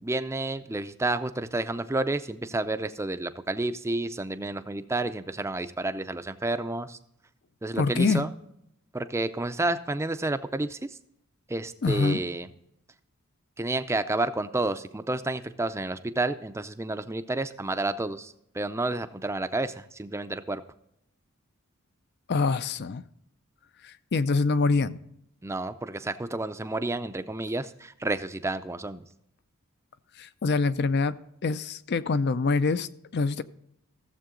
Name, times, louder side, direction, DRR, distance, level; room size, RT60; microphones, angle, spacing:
voice 1, 0.0-7.0 7.6-8.3 8.9-11.0 11.5-12.5 13.6-20.6 25.4-29.0, right 2 dB, 10° right, 0.5 m, -30 dB
voice 2, 7.8-8.3 11.8-12.2 22.3-23.0 23.8-25.0 30.2-31.1 31.4-33.4, left 4 dB, 50° left, 0.5 m, -25 dB
15.0 x 7.5 x 3.8 m
head